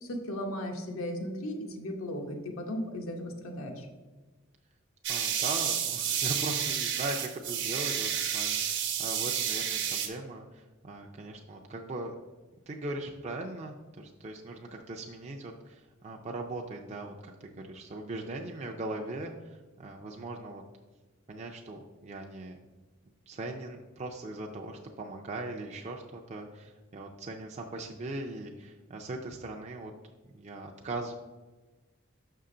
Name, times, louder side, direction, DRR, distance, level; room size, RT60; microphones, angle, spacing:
voice 1, 0.0-3.9, equal, 90° left, 3 dB, 1.1 m, -36 dB
sound 1, 5.0-10.1, right 9 dB, 60° right, 0.9 m, -30 dB
voice 2, 5.1-12.1 12.7-20.6 21.3-22.6 23.3-29.9 30.3-31.1, right 2 dB, 35° right, 1 dB, 0.5 m, -40 dB
6.7 x 5.5 x 3.8 m, 1.2 s
head